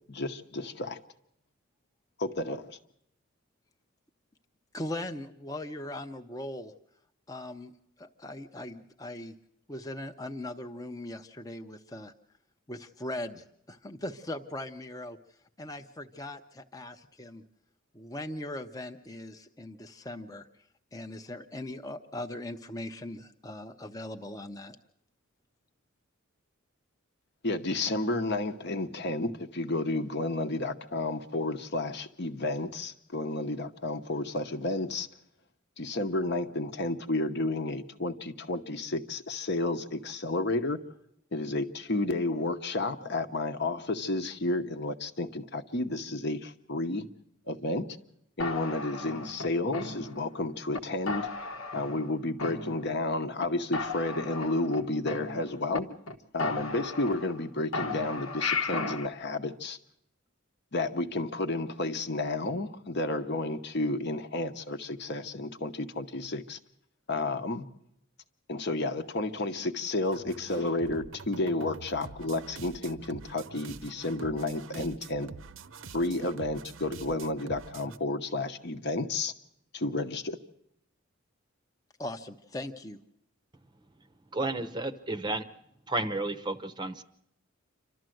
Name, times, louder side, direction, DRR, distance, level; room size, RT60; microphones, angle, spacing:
voice 1, 0.1-1.0 2.2-2.8 27.4-35.1 35.8-40.8 41.3-47.1 47.5-48.0 48.4-51.3 51.7-55.9 56.3-59.8 60.7-66.6 67.1-67.7 68.5-75.3 75.9-79.3 79.7-80.4, left 2 dB, 55° left, 1.0 m, -31 dB
voice 2, 4.7-6.7 7.3-9.3 9.7-12.1 12.7-15.2 15.6-17.4 17.9-20.5 20.9-24.8 82.0-83.0, left 1 dB, 15° left, 0.7 m, -40 dB
sound 1, 48.4-50.3 50.7-50.8 51.1-52.1 52.4-53.1 53.4-53.5 53.7-55.8 56.1-56.2 56.4-57.4 57.7-59.1, left 3 dB, 80° left, 1.2 m, -35 dB
sound 2, 70.1-78.0, right 4 dB, 70° right, 0.7 m, -46 dB
voice 3, 84.3-85.4 85.9-87.0, right 2 dB, 20° right, 0.7 m, -32 dB
28.0 x 13.0 x 7.7 m
head